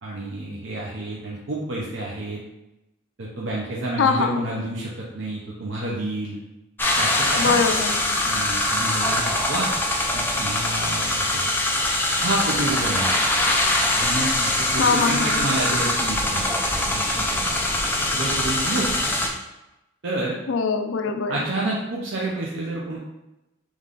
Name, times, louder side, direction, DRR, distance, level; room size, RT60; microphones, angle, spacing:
voice 1, 0.0-2.4 3.2-6.4 7.0-7.6 8.2-9.7 10.1-11.4 12.1-13.1 13.9-17.6 18.1-18.9 20.0-20.4 21.3-23.0, right 2 dB, 65° right, -4 dB, 0.7 m, -29 dB
voice 2, 4.0-4.4 7.4-8.0 14.8-15.5 20.5-21.4, left 5 dB, 70° left, 6 dB, 0.4 m, -22 dB
sound 1, 6.8-19.3, left 1 dB, 10° left, 0.4 m, -23 dB
3.6 x 3.1 x 3.7 m, 0.96 s
head